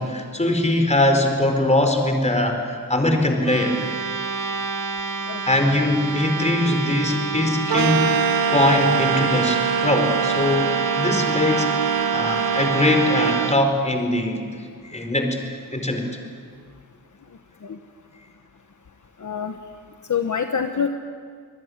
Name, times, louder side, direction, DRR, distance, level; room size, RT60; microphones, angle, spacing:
voice 1, 0.0-3.8 5.4-15.4 15.7-16.0, left 1 dB, 20° left, 4 dB, 4.2 m, -22 dB
sound 1, 3.4-13.6, right 4 dB, 55° right, 1.7 m, -29 dB
sound 2, 7.7-13.5, right 7 dB, 75° right, 0.8 m, -23 dB
voice 2, 19.2-19.6 20.1-20.9, left 7 dB, 55° left, 6 dB, 1.3 m, -25 dB
25.5 x 21.0 x 9.6 m, 2.1 s
wide cardioid pair, 120°, 35 cm